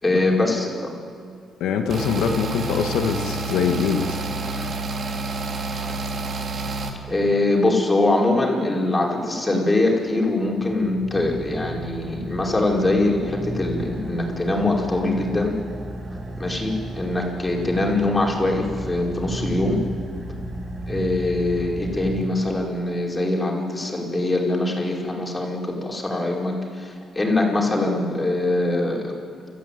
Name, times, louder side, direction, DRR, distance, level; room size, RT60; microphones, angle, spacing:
voice 1, 0.0-0.7 7.1-15.6 16.4-19.8 20.9-29.2, left 2 dB, 20° left, -1 dB, 5.1 m, -23 dB
voice 2, 1.6-4.2 4.6-4.7, left 6 dB, 85° left, 4 dB, 1.9 m, -23 dB
sound 1, 1.9-6.9, right 3 dB, 55° right, 3.0 m, -28 dB
Car / Idling, 10.1-22.9, right 1 dB, 35° right, 5.1 m, -34 dB
29.5 x 13.5 x 9.4 m, 2.3 s
cardioid pair, 90°, 0 cm